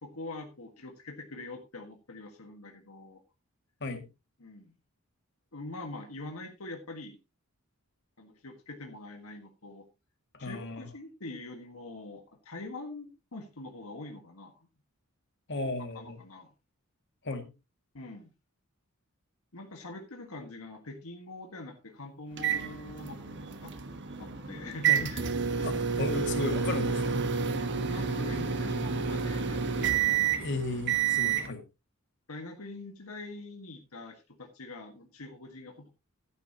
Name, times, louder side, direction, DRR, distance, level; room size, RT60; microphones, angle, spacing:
voice 1, 0.0-3.2 4.4-4.7 5.5-7.2 8.2-9.9 10.4-14.5 15.6-16.5 17.9-18.3 19.5-23.7 24.2-25.3 27.9-30.3 32.3-35.9, left 2 dB, 75° left, 3 dB, 1.7 m, -44 dB
voice 2, 10.3-10.9 15.5-16.2 17.2-17.5 24.9-25.0 25.6-27.2 30.4-31.6, left 2 dB, 55° left, 6 dB, 2.3 m, -35 dB
sound 1, 22.4-31.5, right 6 dB, 55° right, 1.3 m, -29 dB
12.5 x 11.0 x 3.0 m, 0.27 s
head